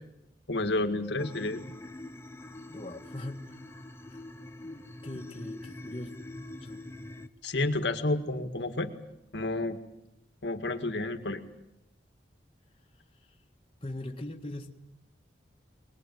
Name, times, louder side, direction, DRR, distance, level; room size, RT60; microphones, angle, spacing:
voice 1, 0.5-1.7 7.4-8.9 9.3-9.8 10.4-11.4, left 2 dB, 70° left, 7 dB, 2.0 m, -30 dB
sound 1, 1.2-7.3, left 1 dB, 15° left, 0.9 m, -44 dB
voice 2, 2.7-3.6 4.1-4.2 4.6-6.1 6.6-6.9 13.3-13.4 13.8-14.7, left 1 dB, 30° left, 1 dB, 1.8 m, -41 dB
23.0 x 20.5 x 9.3 m, 0.86 s
head